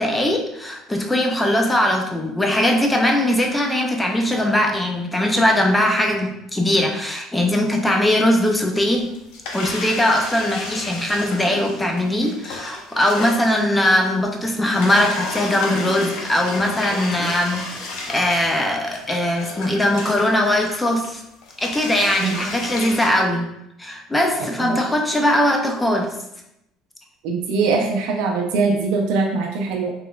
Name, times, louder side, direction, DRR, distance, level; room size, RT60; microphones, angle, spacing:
voice 1, 0.0-9.1 9.5-21.2 21.6-23.5 23.8-26.1, left 1 dB, 10° left, 2 dB, 0.4 m, -20 dB
sound 1, 8.8-14.3 14.6-23.1, left 3 dB, 75° left, 0.6 m, -32 dB
voice 2, 27.2-29.9, right 4 dB, 80° right, 1 dB, 0.4 m, -22 dB
3.0 x 2.9 x 2.3 m, 0.84 s
cardioid pair, 120°, 0 cm